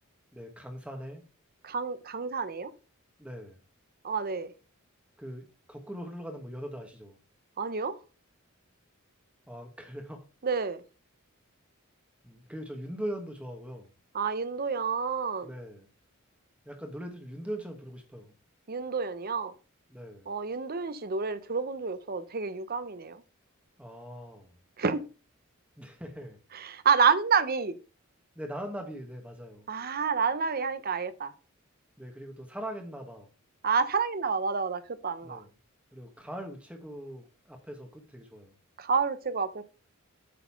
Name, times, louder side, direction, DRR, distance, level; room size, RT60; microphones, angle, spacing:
voice 1, 0.3-1.2 3.2-3.6 5.2-7.2 9.5-10.2 12.2-13.9 15.4-15.9 16.6-18.3 19.9-20.3 23.8-24.5 25.8-26.4 28.3-29.7 32.0-33.3 35.2-35.5 35.9-38.5, equal, 5° right, 1.3 m, -41 dB
voice 2, 1.6-2.7 4.0-4.5 7.6-8.0 10.4-10.8 14.1-15.5 18.7-19.5 20.3-23.2 24.8-25.0 26.5-27.8 29.7-31.3 33.6-35.4 38.8-39.6, right 5 dB, 45° right, 0.8 m, -29 dB
8.3 x 4.2 x 5.7 m
head